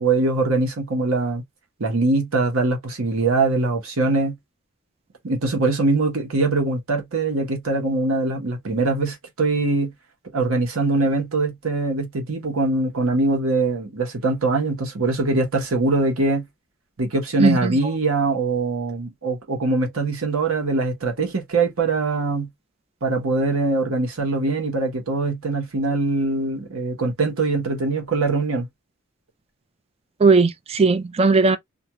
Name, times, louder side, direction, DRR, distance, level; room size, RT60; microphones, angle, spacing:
voice 1, 0.0-1.4 1.8-4.4 5.2-9.9 10.3-16.5 17.0-22.5 23.0-28.7, right 3 dB, 75° right, 1.0 m, -22 dB
voice 2, 17.4-17.8 30.2-31.6, right 4 dB, 30° right, 0.4 m, -17 dB
2.5 x 2.3 x 2.8 m
head